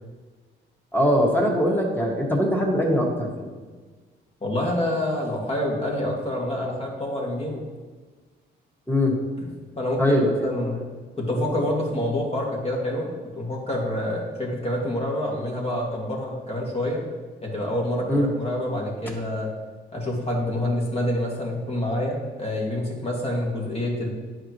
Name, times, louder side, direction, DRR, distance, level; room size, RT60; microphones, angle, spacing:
voice 1, 0.9-3.5 8.9-9.1 10.0-10.5 18.1-18.3, equal, 10° left, -1 dB, 1.8 m, -21 dB
voice 2, 4.4-7.6 9.4-9.5 9.8-10.8 11.2-17.0 17.4-19.5 19.9-24.1, left 1 dB, 30° left, -2 dB, 2.1 m, -27 dB
10.0 x 4.8 x 3.1 m, 1.4 s
cardioid pair, 90°, 20 cm